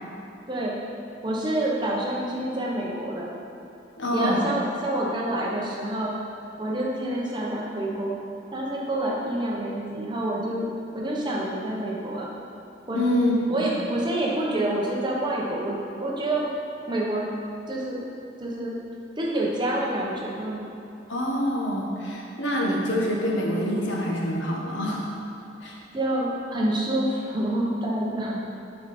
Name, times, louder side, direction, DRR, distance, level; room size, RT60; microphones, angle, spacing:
voice 1, 1.2-3.3 4.1-6.1 6.6-8.2 8.5-10.7 10.9-12.3 12.9-13.0 13.5-16.5 16.9-17.3 17.7-18.0 18.4-18.8 19.2-20.7 25.9-28.4, right 1 dB, 25° right, -4 dB, 0.9 m, -27 dB
voice 2, 4.0-4.4 12.9-13.7 21.1-25.2 25.6-25.8, equal, 80° left, -2 dB, 1.1 m, -26 dB
6.5 x 5.7 x 4.3 m, 2.6 s
head